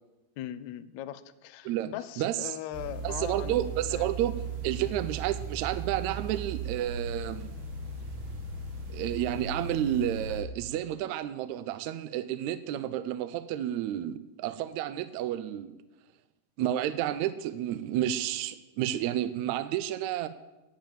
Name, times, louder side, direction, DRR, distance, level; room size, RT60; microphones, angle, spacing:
voice 1, 0.4-3.5 3.9-4.1 4.8-4.9 17.9-18.1, left 12 dB, 80° left, 11 dB, 1.7 m, -39 dB
voice 2, 1.6-2.5 3.0-7.5 8.9-15.8 16.6-20.3, right 12 dB, 80° right, 14 dB, 1.7 m, -31 dB
sound 1, 2.7-10.4, right 4 dB, 45° right, 2.1 m, -37 dB
10.5 x 7.4 x 9.0 m, 1.0 s
omnidirectional pair, 3.8 m